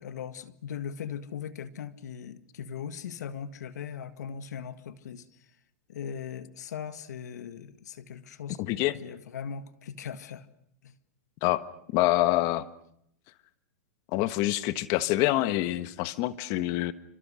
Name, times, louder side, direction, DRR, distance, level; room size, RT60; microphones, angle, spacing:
voice 1, 0.0-5.3 5.9-8.6 9.0-10.5 10.8-11.0, left 7 dB, 85° left, 13 dB, 1.9 m, -39 dB
voice 2, 8.6-9.0 11.4-11.6 11.9-12.6 14.1-16.9, left 16 dB, 40° left, 14 dB, 1.4 m, -26 dB
28.5 x 25.5 x 6.4 m, 0.72 s
supercardioid pair, 155°, 9 cm